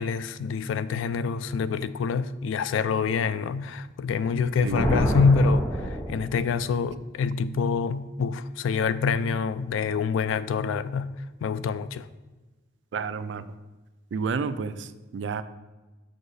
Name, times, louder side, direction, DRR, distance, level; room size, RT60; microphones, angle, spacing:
voice 1, 0.0-12.1, left 5 dB, 80° left, 0.3 m, -26 dB
Thunder, 4.4-6.7, equal, 20° left, 0.8 m, -28 dB
voice 2, 12.9-13.5 14.1-15.4, right 5 dB, 60° right, 0.3 m, -30 dB
6.5 x 6.2 x 2.6 m
head